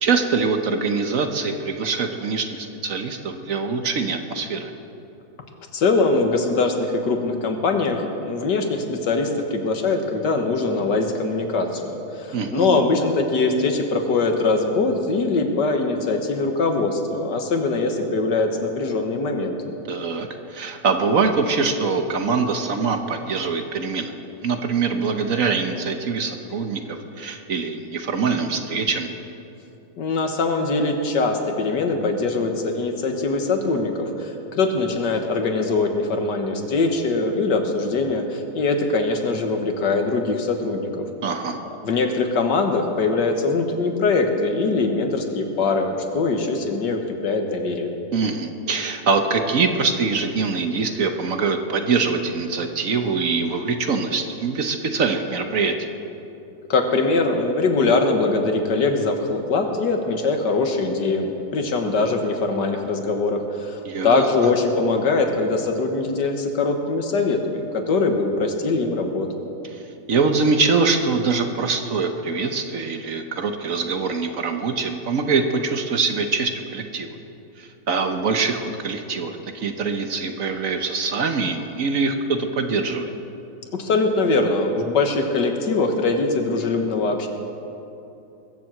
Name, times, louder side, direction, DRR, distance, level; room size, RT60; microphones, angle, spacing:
voice 1, 0.0-4.7 12.3-12.8 19.9-24.1 24.4-29.1 41.2-41.6 48.1-55.7 63.8-64.3 69.7-69.8 70.1-77.1 77.6-83.1, right 4 dB, 55° right, 6 dB, 1.2 m, -23 dB
voice 2, 5.7-19.6 30.0-41.1 41.8-47.9 56.7-69.3 83.7-87.3, left 3 dB, 80° left, 4 dB, 2.0 m, -22 dB
21.0 x 7.5 x 7.7 m, 2.9 s
omnidirectional pair, 1.8 m